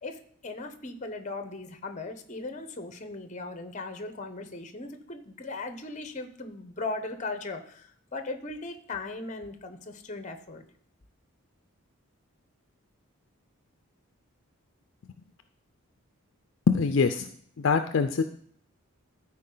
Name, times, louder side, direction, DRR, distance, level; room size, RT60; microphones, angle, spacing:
voice 1, 0.0-10.7, left 3 dB, 35° left, 8 dB, 0.8 m, -38 dB
voice 2, 16.7-17.3 17.6-18.2, left 5 dB, 55° left, 8 dB, 0.4 m, -24 dB
13.5 x 4.5 x 3.8 m, 0.63 s
head